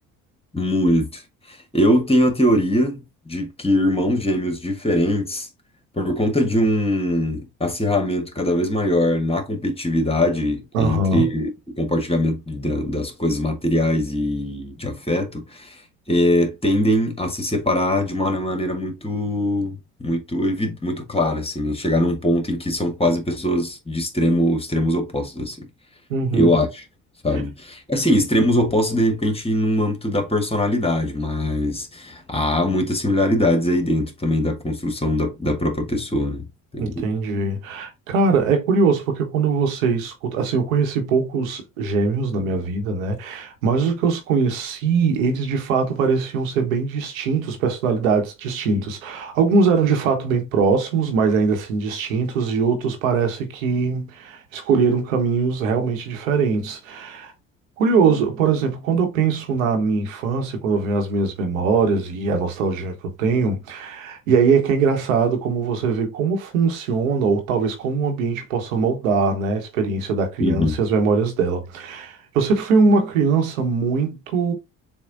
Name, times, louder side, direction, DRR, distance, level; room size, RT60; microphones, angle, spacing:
voice 1, 0.5-1.2 1.5-5.5 5.9-15.8 16.1-19.7 20.0-25.7 26.3-26.8 27.2-36.5 36.7-37.1 70.4-70.8, left 1 dB, 15° left, 1.4 m, -22 dB
voice 2, 10.7-11.3 26.1-26.6 36.8-57.3 57.8-74.5, right 4 dB, 80° right, 1.1 m, -21 dB
7.0 x 2.4 x 2.5 m
hypercardioid pair, 55°, 40 cm